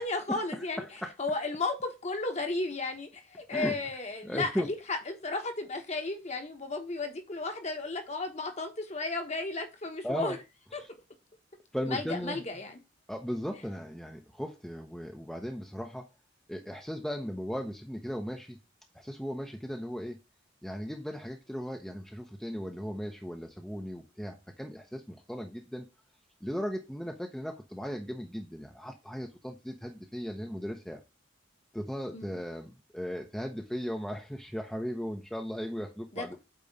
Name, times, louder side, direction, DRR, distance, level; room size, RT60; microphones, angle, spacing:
voice 1, 0.0-0.8 1.2-10.4 10.7-10.8 11.9-12.8 32.1-32.4 36.1-36.4, left 3 dB, 35° left, 1.2 m, -34 dB
voice 2, 0.5-1.1 3.5-3.8 4.2-4.7 10.0-10.4 10.7-10.9 11.7-12.4 13.1-16.1 16.5-18.6 18.9-20.2 20.6-25.9 26.4-31.0 31.7-36.3, equal, ahead, 0.7 m, -37 dB
8.6 x 3.0 x 5.4 m
head